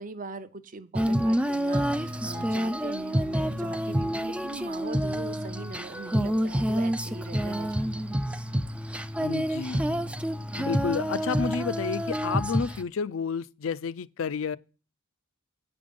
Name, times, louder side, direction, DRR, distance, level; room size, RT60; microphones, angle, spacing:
voice 1, 0.0-8.2, right 3 dB, 40° right, 0.6 m, -41 dB
Female singing, 0.9-12.8, equal, 5° right, 0.3 m, -28 dB
voice 2, 9.2-9.8 10.5-14.6, left 5 dB, 65° left, 0.4 m, -30 dB
9.5 x 5.2 x 5.2 m
head